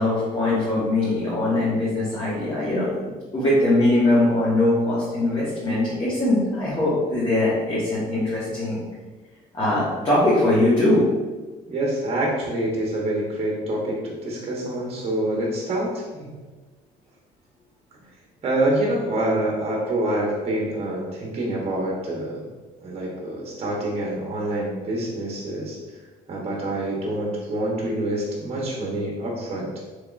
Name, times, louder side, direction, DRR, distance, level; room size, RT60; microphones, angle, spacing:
voice 1, 0.0-3.0 3.3-8.8 9.5-11.0, left 1 dB, 30° left, -9 dB, 1.2 m, -21 dB
voice 2, 11.7-16.3 18.4-22.4 22.8-25.8 26.3-29.7, right 1 dB, 35° right, -2 dB, 0.8 m, -26 dB
3.4 x 3.1 x 2.4 m, 1.3 s
cardioid pair, 110°, 17 cm